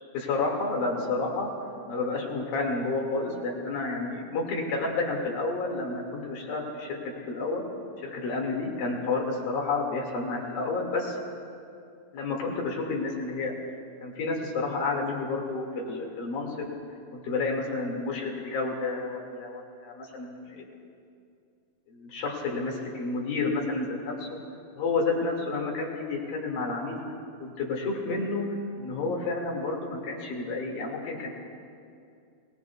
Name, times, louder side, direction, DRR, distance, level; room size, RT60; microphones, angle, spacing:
voice 1, 0.1-1.5 1.9-7.6 8.1-11.2 12.1-13.5 14.0-16.5 17.1-20.6 21.9-24.4 24.8-27.0 27.4-28.4 28.8-31.3, left 3 dB, 60° left, -1 dB, 3.6 m, -30 dB
26.5 x 19.0 x 2.4 m, 2.4 s
omnidirectional pair, 5.0 m